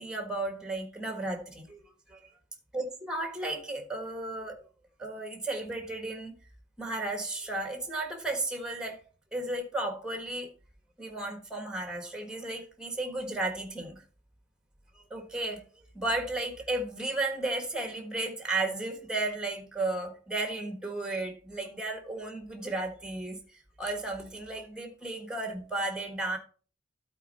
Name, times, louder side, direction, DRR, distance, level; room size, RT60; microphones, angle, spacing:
voice 1, 0.0-1.8 2.1-2.2 2.7-4.6 5.0-6.3 6.8-9.0 9.3-10.5 11.0-14.0 15.1-15.6 15.9-23.4 23.8-26.4, right 2 dB, 5° right, 5 dB, 1.5 m, -34 dB
12.0 x 4.5 x 4.2 m, 0.39 s
head